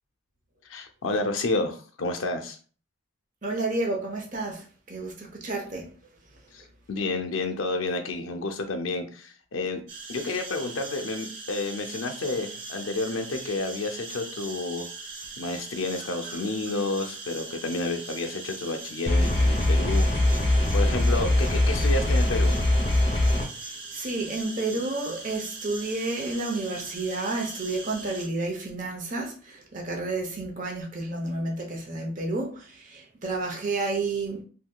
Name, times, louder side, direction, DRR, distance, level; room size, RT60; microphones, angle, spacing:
voice 1, 0.7-2.6 6.5-6.6 6.9-9.8 10.1-14.9 15.4-20.0 20.7-22.5, left 2 dB, 85° left, 0.6 m, -30 dB
voice 2, 3.4-5.9 23.9-34.4, right 2 dB, 40° right, 0.7 m, -31 dB
sound 1, 9.9-28.3, right 3 dB, 70° right, 0.9 m, -40 dB
sound 2, 19.1-23.5, left 1 dB, 30° left, 0.7 m, -22 dB
3.7 x 2.7 x 2.2 m
head